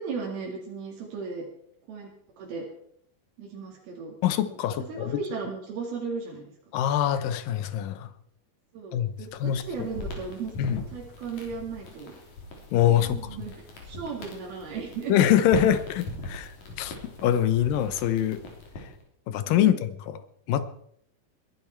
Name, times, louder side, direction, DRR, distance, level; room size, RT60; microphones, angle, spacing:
voice 1, 0.0-1.5 1.9-2.1 2.4-2.7 3.4-4.2 4.5-4.6 4.9-6.5 8.7-10.5 10.9-12.2 12.9-13.5 13.9-15.1 19.5-19.8, right 5 dB, 75° right, -1 dB, 4.1 m, -36 dB
voice 2, 4.2-5.2 6.7-8.1 8.9-9.1 9.4-9.6 10.6-10.8 12.7-13.2 15.1-16.5 16.8-16.9 17.2-18.4 19.3-20.2 20.5-20.7, left 10 dB, 75° left, 13 dB, 2.4 m, -24 dB
sound 1, 9.2-19.0, left 2 dB, 50° left, 4.6 m, -41 dB
21.5 x 11.5 x 4.5 m, 0.69 s
omnidirectional pair, 4.4 m